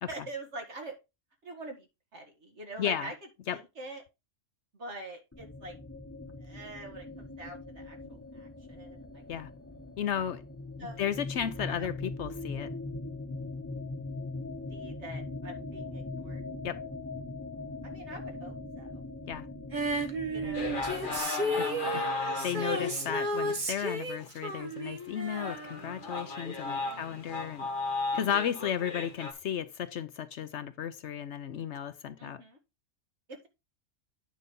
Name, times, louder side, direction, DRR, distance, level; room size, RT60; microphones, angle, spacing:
voice 1, 0.1-0.9 1.4-1.9 2.1-3.1 3.5-4.0 4.8-5.8 6.4-9.0 10.8-11.0 11.8-11.9 14.7-16.4 17.8-19.0 20.3-20.7 21.9-22.1 26.8-27.4 32.2-32.6 33.3-33.5, right 2 dB, 65° right, 2.3 m, -45 dB
voice 2, 2.8-3.1 3.5-3.6 9.3-9.5 10.0-10.4 10.8-12.7 16.6-16.8 19.3-19.5 20.4-20.6 21.6-22.0 22.4-27.7 28.1-32.4, left 9 dB, 70° left, 0.9 m, -34 dB
sound 1, 5.3-21.2, left 2 dB, 15° left, 0.8 m, -41 dB
Female singing, 19.7-26.3 26.6-26.7, right 1 dB, 40° right, 1.4 m, -33 dB
sound 2, 20.5-23.7 24.2-24.3 24.8-24.9 25.3-29.3, left 3 dB, 45° left, 1.4 m, -35 dB
9.2 x 4.0 x 5.2 m
omnidirectional pair, 1.3 m